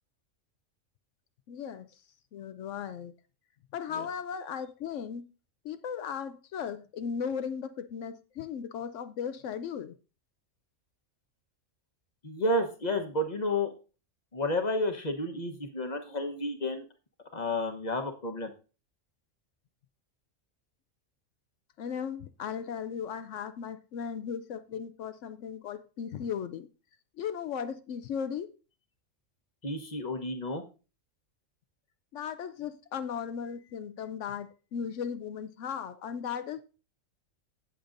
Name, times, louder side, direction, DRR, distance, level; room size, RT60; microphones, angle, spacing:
voice 1, 1.5-1.9 2.3-3.1 3.7-5.2 5.6-9.9 21.8-26.7 27.2-28.5 32.1-36.6, left 7 dB, 75° left, 0.9 m, -36 dB
voice 2, 12.2-13.7 14.3-16.8 17.3-18.5 29.6-30.6, left 1 dB, 35° left, 1.1 m, -31 dB
16.5 x 6.8 x 2.5 m
omnidirectional pair, 1.3 m